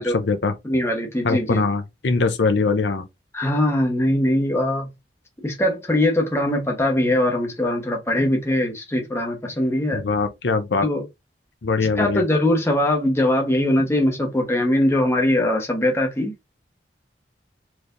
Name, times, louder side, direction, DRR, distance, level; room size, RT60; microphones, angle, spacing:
voice 1, 0.0-0.5 1.2-3.1 9.9-10.9 11.6-12.2, left 4 dB, 80° left, 0.6 m, -22 dB
voice 2, 0.6-1.6 3.3-4.9 5.4-10.0 10.8-11.0 11.8-16.3, left 1 dB, 15° left, 1.0 m, -21 dB
4.4 x 3.3 x 2.5 m
head